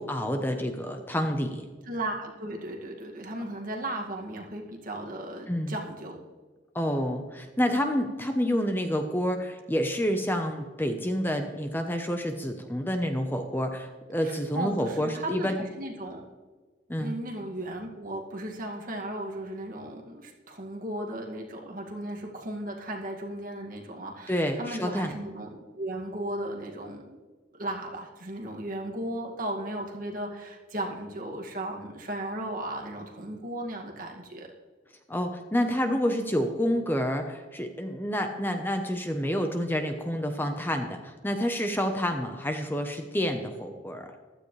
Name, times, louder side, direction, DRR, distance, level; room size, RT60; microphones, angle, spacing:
voice 1, 0.0-1.7 5.5-5.7 6.7-15.6 16.9-17.1 24.3-25.1 35.1-44.1, equal, 10° left, 5 dB, 0.9 m, -28 dB
voice 2, 1.8-6.2 14.2-16.2 17.0-25.5 25.7-27.2 27.5-34.5, right 1 dB, 50° right, 0 dB, 2.1 m, -36 dB
15.5 x 12.5 x 3.3 m, 1.3 s
head